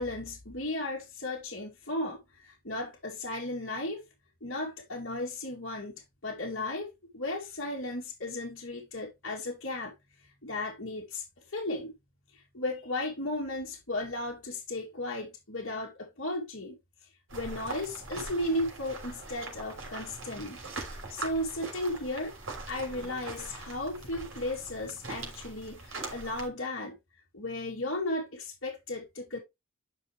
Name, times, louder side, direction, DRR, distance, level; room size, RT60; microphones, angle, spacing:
voice 1, 0.0-4.0 4.4-5.9 6.2-6.9 7.1-9.9 10.4-11.9 12.3-16.8 17.3-20.6 21.1-22.4 22.7-27.0 27.3-29.4, left 1 dB, 65° left, 2.4 m, -35 dB
sound 1, 17.3-26.5, right 3 dB, 75° right, 3.1 m, -42 dB
9.5 x 5.5 x 3.1 m
head